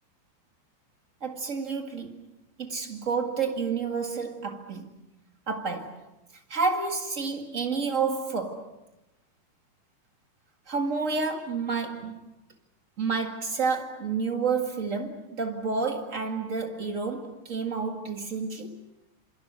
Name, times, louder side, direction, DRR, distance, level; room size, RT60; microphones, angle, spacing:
voice 1, 1.2-2.3 2.6-4.9 5.5-6.0 6.5-8.8 10.7-12.2 13.0-18.8, right 4 dB, 55° right, 0.8 m, -30 dB
27.5 x 27.0 x 6.7 m
omnidirectional pair, 4.9 m